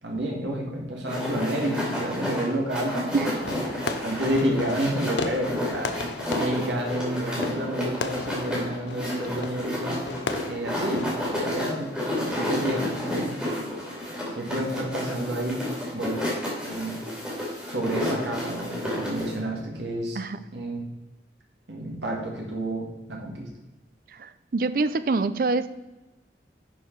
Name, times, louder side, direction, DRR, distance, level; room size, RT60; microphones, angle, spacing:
voice 1, 0.0-3.6 4.0-6.0 6.3-10.0 10.5-13.3 14.3-15.6 15.9-16.2 16.6-17.0 17.7-20.2 20.5-20.9 21.7-23.5, right 1 dB, 85° right, -1 dB, 1.8 m, -30 dB
sound 1, 1.1-19.3, left 1 dB, 5° right, 2.6 m, -31 dB
Fireworks, 3.4-11.5, left 4 dB, 85° left, 0.7 m, -36 dB
voice 2, 24.1-25.7, right 3 dB, 50° right, 13 dB, 0.4 m, -25 dB
11.0 x 4.7 x 4.5 m, 1.1 s
head